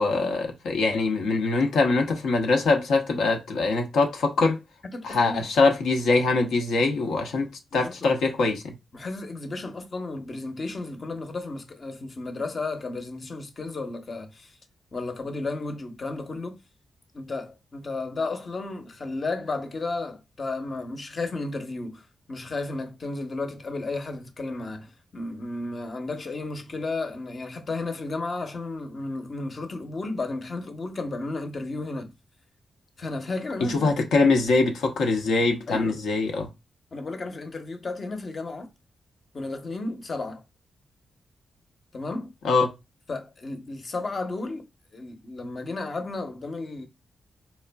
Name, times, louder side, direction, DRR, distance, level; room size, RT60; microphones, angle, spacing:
voice 1, 0.0-4.6 5.0-8.7 33.6-36.5 42.4-42.7, left 3 dB, 85° left, 0.7 m, -23 dB
voice 2, 4.8-5.5 7.7-8.1 8.9-14.6 14.9-16.6 17.1-32.1 33.0-33.9 35.7-36.0 36.9-38.7 39.3-40.4 41.9-42.3 43.1-44.7 44.9-46.9, left 3 dB, 50° left, 0.8 m, -33 dB
4.2 x 2.4 x 2.2 m
cardioid pair, 55°, 0 cm